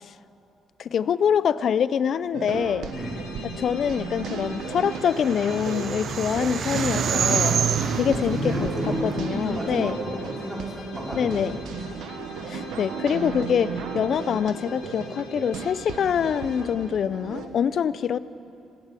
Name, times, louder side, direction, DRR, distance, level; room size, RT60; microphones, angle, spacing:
voice 1, 0.8-2.9 3.4-7.6 7.9-8.7 9.0-10.0 11.1-11.6 12.5-18.2, left 8 dB, 60° left, 17 dB, 0.4 m, -25 dB
sound 1, 2.3-17.5, right 6 dB, 80° right, 1.1 m, -35 dB
sound 2, 2.9-16.7, left 5 dB, 80° left, 1.6 m, -44 dB
sound 3, 4.5-9.9, right 7 dB, 60° right, 0.7 m, -28 dB
voice 2, 7.9-11.5, equal, 15° right, -5 dB, 4.7 m, -31 dB
16.0 x 11.5 x 7.6 m, 2.6 s
cardioid pair, 90°, 0 cm